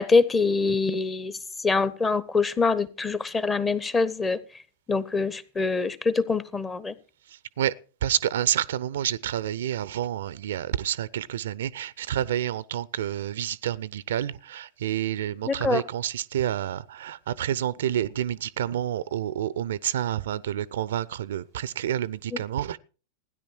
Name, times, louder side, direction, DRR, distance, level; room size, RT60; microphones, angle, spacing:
voice 1, 0.0-1.3 1.6-4.4 4.9-6.9 15.4-15.8, left 4 dB, 15° left, 0.9 m, -24 dB
voice 2, 8.0-22.8, right 11 dB, 60° right, 0.5 m, -29 dB
16.5 x 10.0 x 4.5 m
figure-of-eight pair, 90°, 0 cm